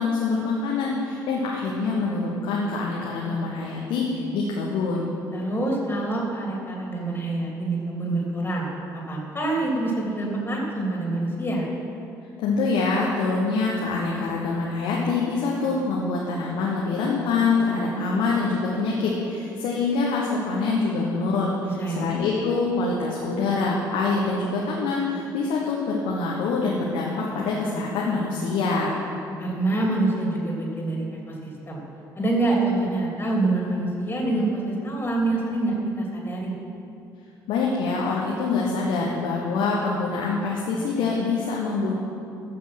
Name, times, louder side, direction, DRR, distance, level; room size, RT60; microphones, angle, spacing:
voice 1, 0.0-5.1 12.4-28.9 37.5-41.9, left 4 dB, 60° left, -3 dB, 1.3 m, -25 dB
voice 2, 5.3-8.7 9.1-11.7 21.8-22.0 29.4-31.8 32.1-36.6, right 2 dB, 20° left, -2 dB, 3.1 m, -26 dB
14.5 x 6.0 x 6.1 m, 2.6 s
figure-of-eight pair, 50°, 10 cm